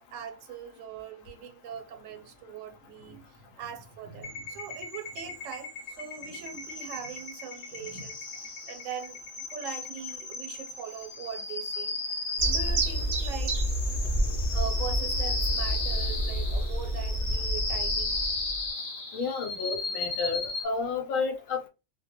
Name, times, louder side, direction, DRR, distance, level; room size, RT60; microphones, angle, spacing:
voice 1, 0.1-9.2 9.5-13.6 14.5-18.2, right 7 dB, 85° right, 1.0 m, -41 dB
sound 1, 4.2-20.6, left 3 dB, 55° left, 0.8 m, -35 dB
sound 2, 12.4-18.7, right 1 dB, 65° right, 0.4 m, -29 dB
voice 2, 19.1-21.7, left 4 dB, 85° left, 1.0 m, -31 dB
2.2 x 2.1 x 2.8 m
omnidirectional pair, 1.3 m